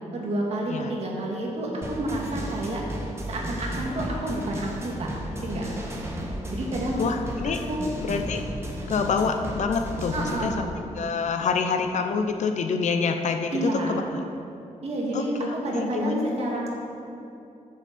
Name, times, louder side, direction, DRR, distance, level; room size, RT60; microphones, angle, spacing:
voice 1, 0.1-2.8 3.3-5.8 6.5-7.0 7.5-7.9 10.1-10.6 13.5-14.0 14.8-15.3 15.6-16.7, right 1 dB, 55° right, -2 dB, 2.1 m, -29 dB
sound 1, 1.8-10.5, equal, 20° right, 1.4 m, -34 dB
voice 2, 7.0-7.6 8.0-8.4 8.9-10.7 11.0-14.2 15.1-16.3, left 5 dB, 65° left, 6 dB, 0.8 m, -27 dB
14.0 x 7.1 x 4.3 m, 2.7 s
wide cardioid pair, 140°, 13 cm